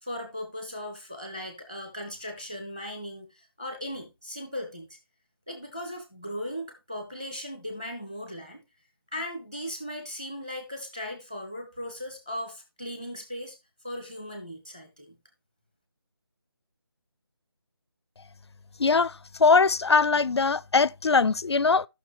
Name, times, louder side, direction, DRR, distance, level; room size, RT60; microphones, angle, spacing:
voice 1, 0.0-4.9 5.5-8.6 9.1-13.6 13.8-15.2, left 1 dB, 10° right, 1.4 m, -37 dB
voice 2, 18.8-21.9, left 4 dB, 90° left, 0.5 m, -21 dB
15.0 x 6.0 x 3.1 m
figure-of-eight pair, 180°, 13 cm